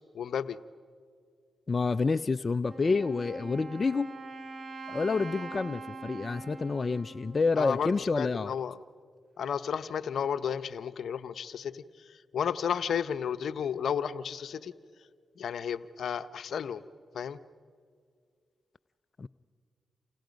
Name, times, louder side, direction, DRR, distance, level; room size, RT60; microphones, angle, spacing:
voice 1, 0.1-0.6 7.6-8.8 9.4-14.7 15.4-16.8 17.1-17.4, left 7 dB, 75° left, 13 dB, 0.8 m, -33 dB
voice 2, 1.7-4.1 4.9-8.5 19.2-19.3, left 4 dB, 45° left, 12 dB, 0.5 m, -28 dB
Wind instrument woodwind instrument, 2.7-8.4, right 3 dB, 40° right, 3.8 m, -44 dB
29.0 x 28.5 x 5.3 m, 2.1 s
supercardioid pair, 40°, 0 cm